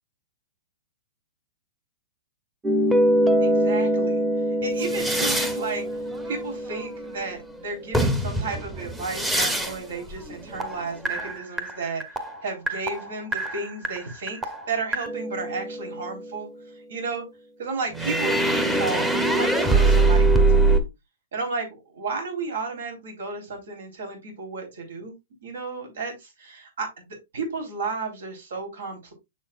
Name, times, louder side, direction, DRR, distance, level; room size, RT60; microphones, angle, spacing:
sound 1, 2.6-7.6 7.9-9.9 10.1-16.3 17.9-20.8, right 2 dB, 5° right, 0.9 m, -23 dB
voice 1, 3.4-4.3 4.6-5.9 6.3-12.0 12.4-17.3 17.6-20.9 21.3-25.2 25.4-29.1, right 4 dB, 80° right, 2 dB, 4.0 m, -33 dB
6.7 x 6.3 x 2.5 m, 0.21 s
hypercardioid pair, 150°, 0 cm